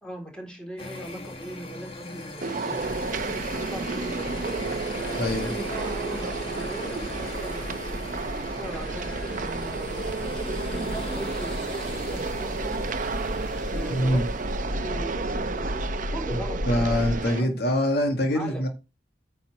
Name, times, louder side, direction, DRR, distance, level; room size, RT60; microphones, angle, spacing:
voice 1, 0.0-4.6 5.3-8.0 8.6-12.9 13.7-14.3 14.7-17.9 18.3-18.7, right 1 dB, 5° left, 3.6 m, -40 dB
sound 1, 0.8-15.5, left 1 dB, 35° left, 1.6 m, -40 dB
sound 2, 2.4-17.4, right 4 dB, 50° right, 0.7 m, -32 dB
sound 3, 2.8-17.3, left 1 dB, 85° left, 1.1 m, -36 dB
voice 2, 5.2-5.5 13.9-14.2 16.3-16.4 16.7-18.7, equal, 65° left, 1.8 m, -24 dB
9.2 x 4.3 x 7.3 m
head